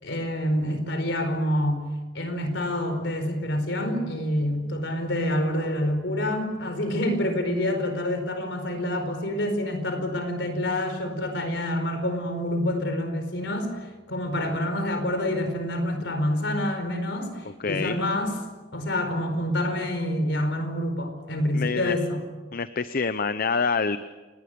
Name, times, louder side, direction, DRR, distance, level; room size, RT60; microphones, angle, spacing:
voice 1, 0.0-1.9 2.1-13.8 14.1-18.4 18.7-22.2, left 1 dB, 70° left, 8 dB, 4.6 m, -27 dB
voice 2, 17.5-18.0 21.5-22.0 22.5-24.0, left 4 dB, 50° left, 12 dB, 0.7 m, -26 dB
29.5 x 19.5 x 6.9 m, 1.2 s
head